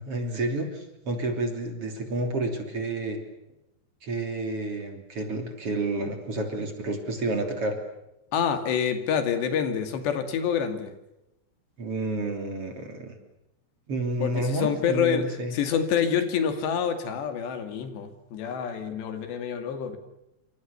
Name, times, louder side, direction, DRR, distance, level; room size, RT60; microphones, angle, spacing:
voice 1, 0.0-3.2 4.0-7.8 11.8-13.2 13.9-15.5, right 2 dB, 35° right, 5 dB, 3.6 m, -30 dB
voice 2, 8.3-10.9 14.2-20.0, left 7 dB, 85° left, 8 dB, 4.6 m, -27 dB
27.0 x 26.0 x 7.0 m, 0.88 s
omnidirectional pair, 4.8 m